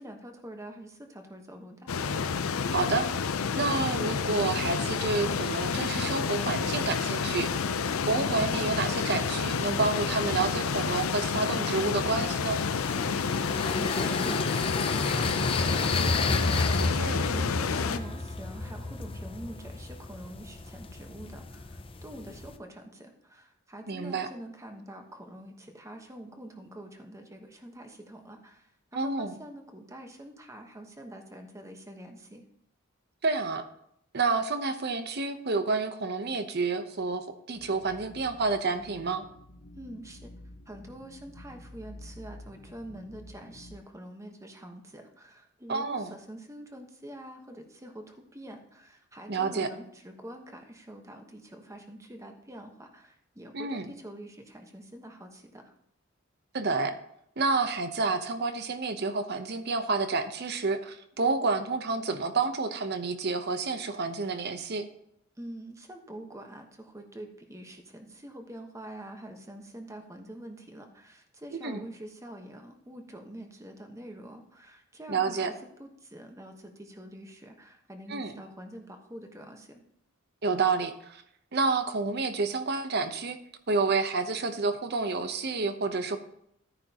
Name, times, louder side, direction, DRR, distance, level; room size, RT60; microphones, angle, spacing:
voice 1, 0.0-1.9 13.8-32.4 39.7-40.3 40.7-55.7 65.4-75.5 75.8-79.8, right 1 dB, 15° right, 4 dB, 1.2 m, -45 dB
sound 1, 1.9-18.0, left 5 dB, 90° left, 0.6 m, -29 dB
voice 2, 2.7-3.1 3.5-7.7 8.0-12.6 17.0-17.3 23.9-24.3 28.9-29.3 33.2-33.7 34.1-39.2 45.7-46.1 49.3-49.7 53.5-53.9 56.5-56.9 57.4-64.9 71.6-71.8 75.1-75.5 78.1-78.3 80.4-81.2 81.5-83.4 83.7-86.2, right 4 dB, 50° right, 9 dB, 0.8 m, -29 dB
sound 2, 12.1-22.6, left 3 dB, 25° left, 0.6 m, -32 dB
sound 3, 37.5-43.8, left 1 dB, 70° left, 1.1 m, -49 dB
13.5 x 9.6 x 2.9 m, 0.73 s
head